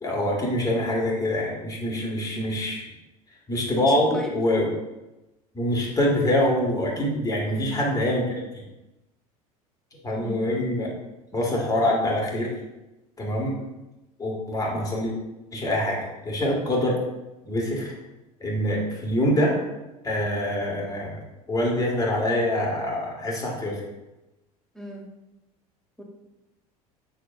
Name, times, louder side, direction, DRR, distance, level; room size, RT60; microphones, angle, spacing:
voice 1, 0.0-2.9 3.5-4.7 5.5-8.6 9.9-10.9 11.3-12.5 13.2-13.6 14.2-15.1 15.5-17.0 17.4-17.9 18.4-19.6 20.0-21.2 21.5-23.8, left 1 dB, 20° left, -2 dB, 1.9 m, -25 dB
voice 2, 3.9-4.3 7.5-7.8 10.2-10.5 24.7-25.1 26.0-26.1, left 1 dB, 5° left, -1 dB, 1.2 m, -38 dB
6.9 x 5.8 x 2.6 m, 1.0 s
figure-of-eight pair, 70°, 19 cm